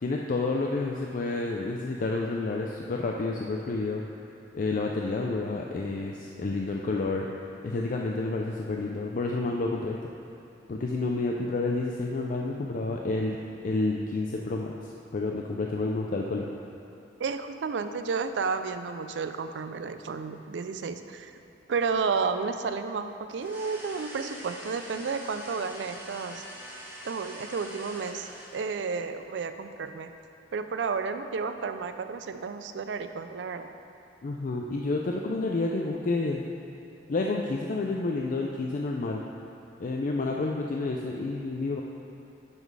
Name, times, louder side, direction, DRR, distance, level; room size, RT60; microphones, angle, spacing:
voice 1, 0.0-4.0 4.5-7.3 7.6-10.0 10.7-13.4 13.6-16.5 34.2-36.5 37.1-39.2 39.8-41.8, left 3 dB, 50° left, 0 dB, 0.4 m, -29 dB
voice 2, 17.2-21.3 21.7-26.4 27.0-30.1 30.5-33.7, right 5 dB, 80° right, 9 dB, 0.4 m, -32 dB
sound 1, 23.3-28.9, equal, 10° right, 1.2 m, -44 dB
10.5 x 4.0 x 4.7 m, 2.6 s
head